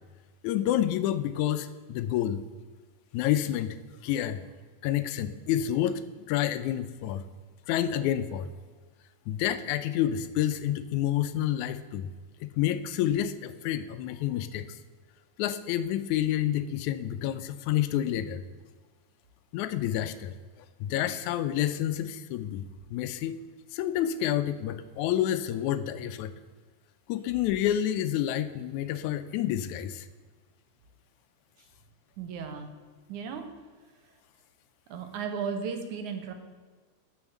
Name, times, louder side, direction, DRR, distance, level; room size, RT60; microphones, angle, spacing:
voice 1, 0.4-2.4 3.1-3.8 4.0-4.4 4.8-7.2 7.7-8.5 9.3-12.1 12.4-14.8 15.4-18.4 19.5-20.3 20.8-22.6 22.9-23.4 23.7-26.3 27.1-30.1, left 11 dB, 80° left, 12 dB, 1.9 m, -29 dB
voice 2, 32.2-32.7 33.1-33.5 34.9-36.3, right 6 dB, 75° right, 6 dB, 2.5 m, -35 dB
9.8 x 6.3 x 7.2 m, 1.5 s
omnidirectional pair, 3.5 m